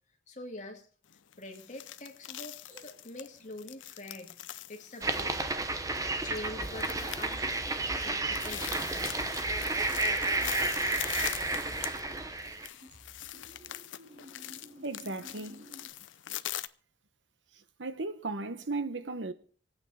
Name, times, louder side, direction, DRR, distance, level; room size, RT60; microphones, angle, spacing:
voice 1, 0.3-0.9 1.4-4.4 4.7-5.3 6.2-7.5 8.0-9.0, left 1 dB, 40° left, 2.2 m, -45 dB
sound 1, 1.1-16.7, left 12 dB, 85° left, 0.6 m, -42 dB
sound 2, 2.7-3.6 4.7-4.8 5.0-12.4 12.7-15.9, equal, 40° right, 3.8 m, -55 dB
sound 3, 5.0-12.7, right 2 dB, 20° right, 0.9 m, -32 dB
voice 2, 14.8-15.7 17.8-19.3, right 3 dB, 80° right, 1.0 m, -36 dB
25.5 x 8.9 x 4.2 m
head